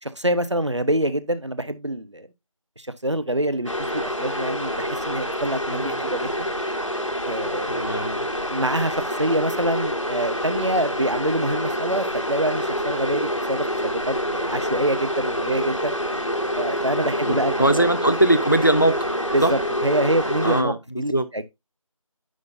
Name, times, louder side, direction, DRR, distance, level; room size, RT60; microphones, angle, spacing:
voice 1, 0.0-2.3 2.8-6.5 7.2-7.9 8.5-15.9 16.6-17.9 19.3-21.4, right 1 dB, 55° right, 1.0 m, -26 dB
sound 1, 3.7-20.6, equal, 65° left, 1.8 m, -27 dB
voice 2, 7.7-8.3 16.9-19.0 19.4-19.5 20.4-21.3, right 1 dB, 35° left, 0.6 m, -21 dB
9.6 x 6.1 x 2.6 m
figure-of-eight pair, 180°, 18 cm